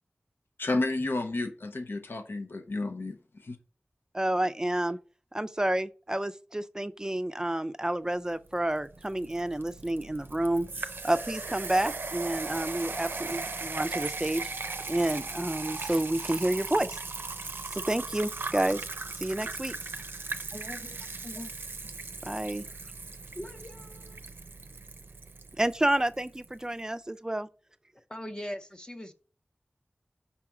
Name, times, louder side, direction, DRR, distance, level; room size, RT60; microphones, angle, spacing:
voice 1, 0.6-3.6, left 2 dB, 90° left, 0.7 m, -31 dB
voice 2, 4.1-5.0 5.3-14.5 14.9-17.0 17.7-18.9 19.2-19.7 22.2-22.7 25.6-27.5, right 1 dB, 20° right, 0.4 m, -29 dB
sound 1, 8.5-26.5, right 3 dB, 80° right, 0.5 m, -38 dB
voice 3, 20.5-20.9 21.2-21.5 23.3-24.2 28.1-29.1, equal, 25° left, 0.7 m, -41 dB
5.6 x 3.6 x 5.9 m
wide cardioid pair, 60°, 4 cm